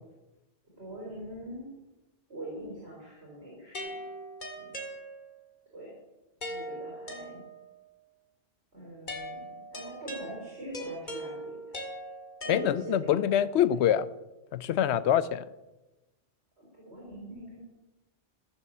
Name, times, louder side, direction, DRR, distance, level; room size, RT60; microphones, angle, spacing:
voice 1, 0.7-1.7 2.3-4.1 4.5-4.7 5.7-5.9 6.5-7.4 8.7-11.8 12.4-13.7 16.6-17.6, right 1 dB, 60° right, -3 dB, 3.8 m, -42 dB
sound 1, 3.7-5.5 6.4-7.8 9.1-13.2, equal, 40° left, 2.2 m, -41 dB
voice 2, 12.5-14.1 14.5-15.5, left 10 dB, 70° left, 17 dB, 0.8 m, -25 dB
14.0 x 6.6 x 7.4 m, 1.0 s
omnidirectional pair, 1.2 m